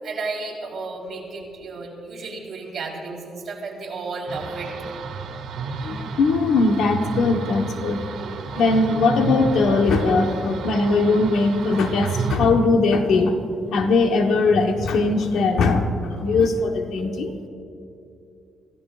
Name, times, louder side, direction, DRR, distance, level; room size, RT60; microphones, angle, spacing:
voice 1, 0.0-4.7, right 3 dB, 45° right, -3 dB, 4.0 m, -33 dB
sound 1, 4.3-12.4, right 4 dB, 80° right, 1.9 m, -31 dB
voice 2, 5.8-8.0 8.6-13.4 13.7-17.3, left 3 dB, 70° left, 4 dB, 1.2 m, -20 dB
27.0 x 16.0 x 2.5 m, 2.6 s
cardioid pair, 145°, 0 cm